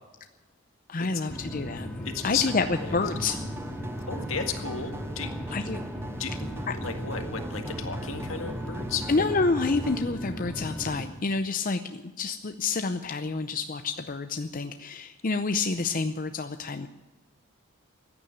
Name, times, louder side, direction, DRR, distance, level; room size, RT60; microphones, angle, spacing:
voice 1, 0.9-1.9 2.2-3.4 5.5-5.8 6.7-6.8 9.1-16.9, left 3 dB, 40° left, 8 dB, 0.6 m, -28 dB
sound 1, 1.3-11.0, equal, 5° left, 2.3 m, -37 dB
voice 2, 2.1-2.5 2.8-3.0 4.1-5.3 5.6-5.7 6.2-9.1, left 6 dB, 75° left, 6 dB, 1.9 m, -33 dB
sound 2, 2.3-10.0, right 1 dB, 10° right, 0.5 m, -40 dB
15.5 x 9.8 x 9.2 m, 1.2 s
head